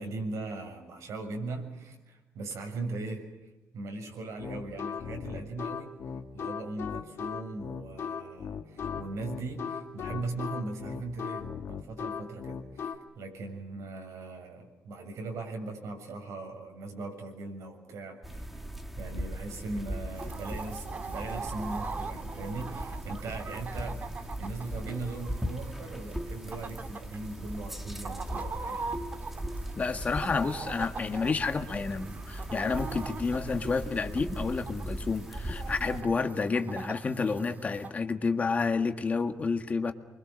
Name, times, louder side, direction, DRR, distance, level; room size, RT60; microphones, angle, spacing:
voice 1, 0.0-5.9 6.3-18.7 19.0-28.8, right 3 dB, 80° right, 3 dB, 7.2 m, -39 dB
sound 1, 4.4-13.0, left 7 dB, 60° left, 2.0 m, -37 dB
sound 2, 18.2-36.0, right 1 dB, 5° right, 1.8 m, -39 dB
Chicken rooster, 20.1-37.9, right 4 dB, 35° right, 1.8 m, -42 dB
voice 2, 29.8-39.9, left 4 dB, 30° left, 7 dB, 1.8 m, -30 dB
28.5 x 24.0 x 6.5 m, 1.1 s
wide cardioid pair, 170°, 5 cm